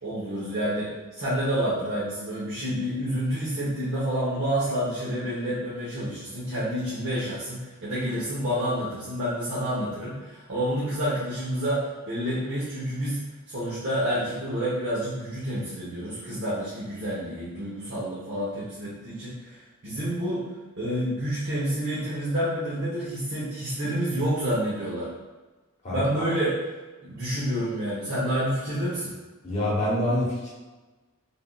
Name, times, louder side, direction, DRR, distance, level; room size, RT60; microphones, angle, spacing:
voice 1, 0.0-20.4 20.8-25.1 25.9-26.6 27.0-29.1, equal, 55° right, -9 dB, 0.8 m, -29 dB
voice 2, 25.8-26.3 29.4-30.5, left 1 dB, 30° left, -6 dB, 0.9 m, -26 dB
3.4 x 2.5 x 2.2 m, 1.2 s
head